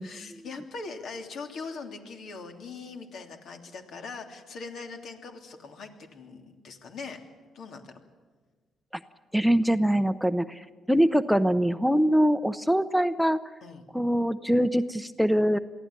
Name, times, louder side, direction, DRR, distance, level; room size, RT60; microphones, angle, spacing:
voice 1, 0.0-7.2 7.5-7.9 13.6-13.9, left 4 dB, 65° left, 4 dB, 3.1 m, -41 dB
voice 2, 9.3-13.4 13.9-15.6, equal, ahead, 11 dB, 0.7 m, -23 dB
23.0 x 15.5 x 9.8 m, 1.4 s
cardioid pair, 90°, 0 cm